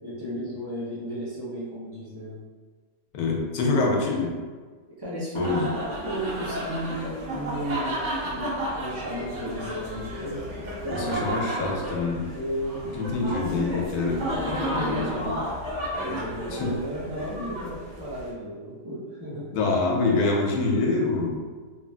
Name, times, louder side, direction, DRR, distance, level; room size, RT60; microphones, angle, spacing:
voice 1, 0.0-2.4 3.7-4.1 5.0-5.7 6.0-8.0 8.2-10.4 10.8-11.3 12.3-12.8 14.2-15.2 16.0-19.5, equal, 30° right, -9 dB, 0.5 m, -34 dB
voice 2, 3.1-4.3 5.3-5.6 11.0-12.2 13.0-14.2 14.5-15.4 16.5-16.7 19.5-21.4, left 3 dB, 90° left, 0 dB, 1.1 m, -25 dB
sound 1, 5.3-18.3, right 1 dB, 60° right, 1.0 m, -32 dB
3.0 x 2.5 x 2.3 m, 1.5 s
omnidirectional pair, 1.5 m